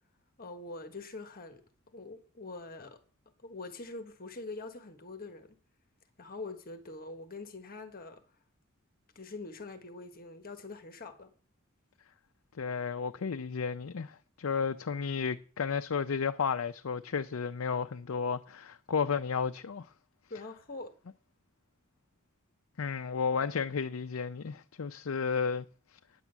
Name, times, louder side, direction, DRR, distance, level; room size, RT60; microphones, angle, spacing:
voice 1, 0.4-1.6 1.9-3.0 3.4-5.6 6.2-8.2 9.1-11.3 20.3-20.9, left 3 dB, 45° left, 1.4 m, -44 dB
voice 2, 12.6-19.9 22.8-25.7, left 6 dB, 75° left, 0.5 m, -32 dB
9.8 x 7.4 x 8.2 m
head